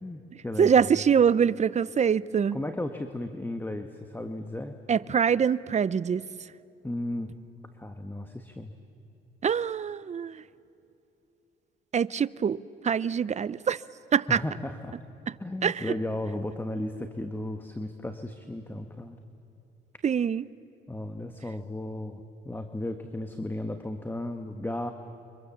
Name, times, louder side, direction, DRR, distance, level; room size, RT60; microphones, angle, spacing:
voice 1, 0.0-0.8 2.5-4.8 6.8-7.3 7.7-8.7 14.3-15.0 15.4-19.2 20.9-24.9, left 1 dB, 10° left, 1.3 m, -35 dB
voice 2, 0.6-2.6 4.9-6.2 9.4-10.4 11.9-13.8 14.1-14.4 15.6-15.9 20.0-20.5, right 7 dB, 35° right, 0.6 m, -24 dB
30.0 x 24.5 x 7.3 m
cardioid pair, 90°, 20 cm